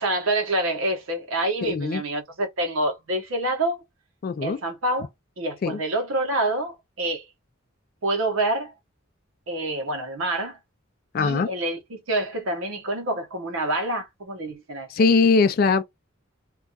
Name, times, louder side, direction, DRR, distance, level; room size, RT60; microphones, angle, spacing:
voice 1, 0.0-3.8 4.4-5.1 5.4-7.3 8.0-8.7 9.5-10.6 11.2-14.9, right 1 dB, 80° right, 0.8 m, -27 dB
voice 2, 1.6-2.0 4.2-4.6 5.6-5.8 11.1-11.5 14.9-15.8, left 4 dB, 45° left, 0.3 m, -21 dB
2.3 x 2.3 x 3.9 m
head